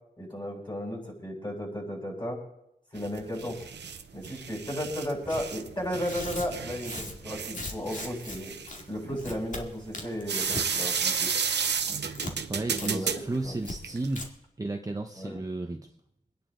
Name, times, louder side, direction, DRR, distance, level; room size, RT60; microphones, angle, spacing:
voice 1, 0.2-2.4 2.9-3.6 4.1-8.5 8.9-11.3 12.8-13.1 13.4-13.5 15.1-15.3, equal, 25° left, -3 dB, 7.4 m, -34 dB
sound 1, 3.0-14.3, right 6 dB, 85° right, 0.9 m, -33 dB
Tearing, 5.3-5.4 6.0-8.4 8.7-8.8 9.2-9.6 9.9-10.7 11.0-11.3 11.6-12.3 12.8-12.9 13.2-13.3 13.6-13.8 14.1-14.3, left 1 dB, 45° left, 2.2 m, -38 dB
voice 2, 12.5-14.3 14.6-15.8, right 2 dB, 20° right, 3 dB, 1.0 m, -33 dB
25.0 x 10.0 x 3.9 m, 0.80 s
wide cardioid pair, 105°, 17 cm